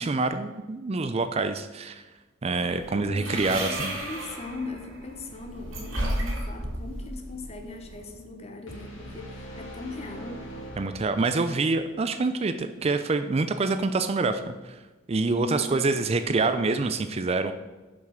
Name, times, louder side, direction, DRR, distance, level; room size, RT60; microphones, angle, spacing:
voice 1, 0.0-2.0 2.4-4.0 10.8-14.8 15.1-17.5, right 3 dB, 30° right, 9 dB, 0.4 m, -26 dB
sound 1, 2.6-8.2, right 1 dB, 85° right, 2.6 m, -34 dB
voice 2, 3.0-10.4 15.3-16.1, left 2 dB, 30° left, 6 dB, 1.0 m, -39 dB
sound 2, 8.7-11.6, equal, 80° left, 2.6 m, -42 dB
7.4 x 5.9 x 6.4 m, 1.2 s
head